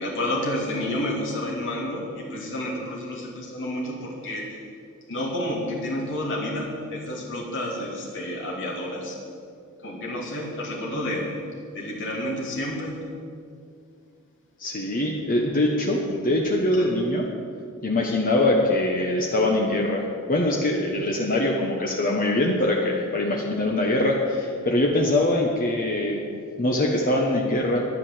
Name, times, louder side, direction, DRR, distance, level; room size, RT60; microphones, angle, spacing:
voice 1, 0.0-4.6 5.1-9.2 9.8-11.4 11.7-13.0 16.1-16.2 16.8-16.9 19.0-19.1 21.0-21.1 23.8-23.9, left 1 dB, 55° left, -1 dB, 2.2 m, -30 dB
voice 2, 14.6-17.3 17.8-26.2 26.6-27.9, left 1 dB, 40° left, -1 dB, 1.1 m, -23 dB
10.5 x 10.5 x 7.4 m, 2.3 s
head